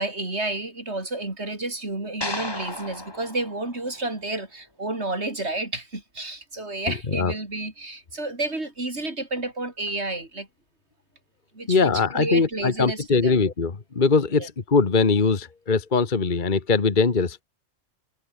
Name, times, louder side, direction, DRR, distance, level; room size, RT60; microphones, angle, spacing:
voice 1, 0.0-10.5 11.5-13.4 14.4-14.5, right 2 dB, 55° right, 5.0 m, -31 dB
sound 1, 2.2-4.6, left 2 dB, 20° left, 1.9 m, -35 dB
voice 2, 11.7-17.4, left 4 dB, 40° left, 1.6 m, -21 dB
omnidirectional pair, 1.3 m